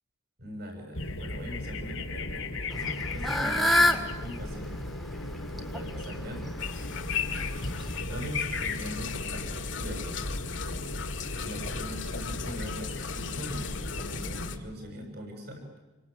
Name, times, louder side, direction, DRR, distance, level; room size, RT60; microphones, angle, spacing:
voice 1, 0.4-4.7 5.0-6.4 7.3-7.4 7.7-10.4 11.4-15.6, equal, 50° right, 3 dB, 7.6 m, -41 dB
sound 1, 0.9-14.5, left 2 dB, 85° left, 3.2 m, -37 dB
Fowl / Bird, 2.7-8.0, left 1 dB, ahead, 1.9 m, -29 dB
sound 2, 6.6-14.6, left 6 dB, 65° left, 2.0 m, -36 dB
27.5 x 25.0 x 8.4 m, 1.1 s
head